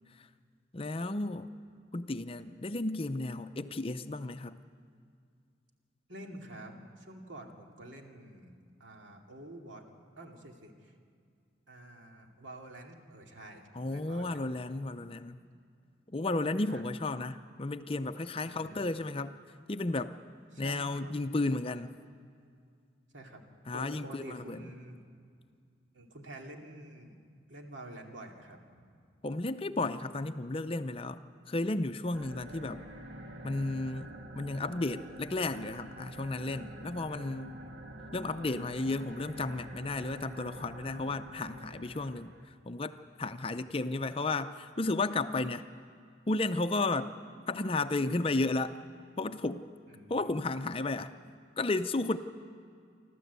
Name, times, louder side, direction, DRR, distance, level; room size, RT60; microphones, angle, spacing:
voice 1, 0.7-1.5 1.9-4.6 13.8-15.4 16.1-19.4 19.7-20.1 20.6-21.9 23.7-24.6 29.2-31.2 31.5-32.8 33.4-34.1 34.3-37.6 38.1-42.3 42.7-45.6 46.3-47.1 47.5-48.8 49.2-49.7 50.1-51.1 51.6-52.2, left 2 dB, 30° left, 10 dB, 0.5 m, -33 dB
voice 2, 6.1-9.8 10.2-10.9 11.7-14.6 16.6-16.8 18.5-18.9 20.5-21.2 23.1-25.0 25.9-27.2 27.5-28.9 32.4-32.7 37.1-37.7 43.5-43.9 49.9-50.4, right 1 dB, 80° right, 2 dB, 2.6 m, -49 dB
sound 1, 32.1-42.5, right 1 dB, 60° right, 1.7 m, -47 dB
28.5 x 12.5 x 8.2 m, 2.2 s
head